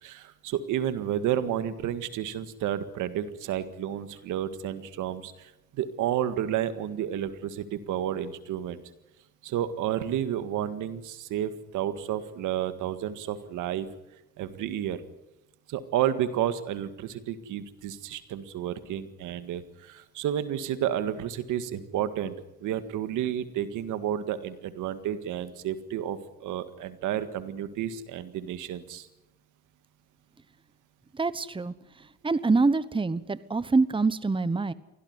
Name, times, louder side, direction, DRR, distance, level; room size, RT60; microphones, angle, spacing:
voice 1, 0.0-8.8 9.4-13.9 14.4-15.0 15.7-22.3 22.6-29.1, right 10 dB, 90° right, 11 dB, 1.8 m, -31 dB
voice 2, 31.1-31.7 32.2-34.7, right 3 dB, 15° right, 16 dB, 1.1 m, -25 dB
24.0 x 17.0 x 9.6 m, 0.95 s
cardioid pair, 90°, 30 cm